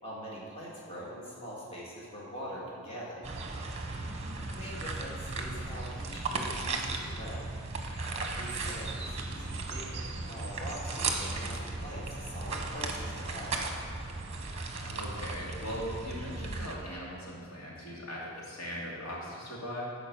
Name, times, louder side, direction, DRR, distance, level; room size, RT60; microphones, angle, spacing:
voice 1, 0.0-3.2 4.5-7.5 8.3-13.6, equal, 30° left, -6 dB, 2.2 m, -43 dB
sound 1, 3.2-16.7, right 3 dB, 30° right, 0.9 m, -36 dB
voice 2, 3.9-4.6 14.7-19.8, equal, 90° left, -5 dB, 2.6 m, -40 dB
11.5 x 5.2 x 6.9 m, 2.1 s
head